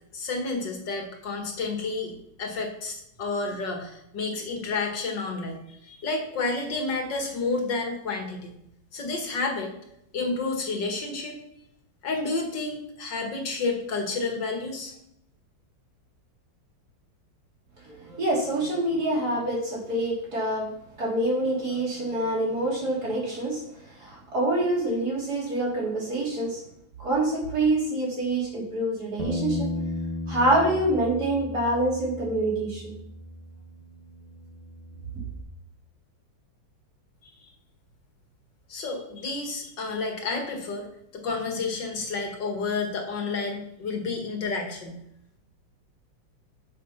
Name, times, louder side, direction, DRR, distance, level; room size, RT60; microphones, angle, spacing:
voice 1, 0.1-8.6 8.9-9.7 10.1-11.4 12.0-14.9 37.4-37.5 38.7-40.9 41.1-45.0, left 3 dB, 65° left, 3 dB, 2.5 m, -30 dB
voice 2, 17.9-20.7 21.0-26.6 27.0-29.7 30.3-32.9, right 1 dB, 50° right, -4 dB, 3.7 m, -26 dB
Bass guitar, 29.2-35.4, left 2 dB, 25° left, 1.2 m, -35 dB
8.0 x 7.3 x 5.8 m, 0.79 s
omnidirectional pair, 2.1 m